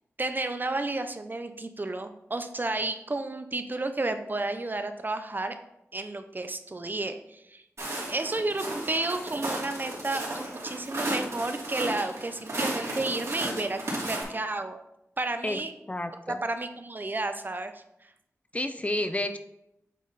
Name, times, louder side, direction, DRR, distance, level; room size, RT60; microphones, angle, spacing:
voice 1, 0.2-5.6 5.9-7.6 8.1-14.8 15.2-15.7 16.3-17.8, right 2 dB, 35° right, 8 dB, 0.6 m, -32 dB
Walk footsteps, 7.8-14.2, right 1 dB, 65° right, 2.4 m, -34 dB
voice 2, 15.9-16.4 18.5-19.4, left 1 dB, 25° left, 9 dB, 0.6 m, -30 dB
8.3 x 3.8 x 4.0 m, 0.82 s
cardioid pair, 55°, 5 cm